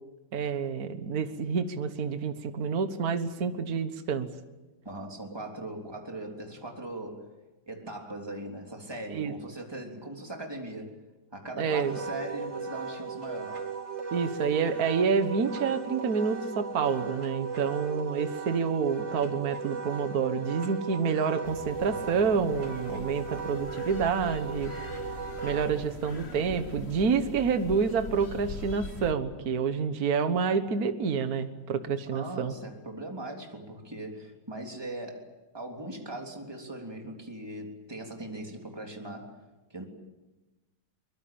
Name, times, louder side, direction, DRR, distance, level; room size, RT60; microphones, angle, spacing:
voice 1, 0.3-4.3 9.1-9.3 11.6-12.0 14.1-24.7 25.4-32.5, right 6 dB, 55° right, 9 dB, 1.8 m, -28 dB
voice 2, 4.9-7.3 7.7-11.0 11.3-13.6 32.1-35.3 35.5-39.4 39.7-39.9, right 1 dB, 15° right, 1 dB, 3.3 m, -39 dB
Wind instrument woodwind instrument, 11.7-25.7, right 5 dB, 85° right, 3.5 m, -37 dB
sound 1, 21.4-29.1, left 3 dB, 35° left, 1.6 m, -42 dB
23.5 x 22.5 x 8.7 m, 1.1 s
omnidirectional pair, 2.0 m